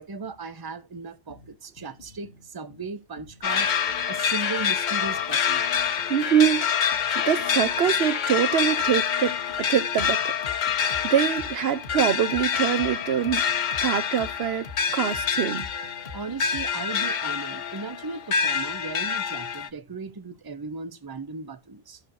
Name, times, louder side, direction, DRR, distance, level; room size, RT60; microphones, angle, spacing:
voice 1, 0.0-3.7 4.0-5.6 16.1-22.0, right 4 dB, 25° right, 0.7 m, -36 dB
sound 1, 1.3-16.9, left 4 dB, 70° left, 1.4 m, -46 dB
sound 2, 3.4-19.7, left 7 dB, 55° left, 0.7 m, -26 dB
voice 2, 6.1-6.7 7.1-10.3 11.0-13.4 13.8-14.7 14.9-16.2, right 9 dB, 80° right, 1.0 m, -24 dB
14.5 x 6.3 x 2.6 m
omnidirectional pair, 1.0 m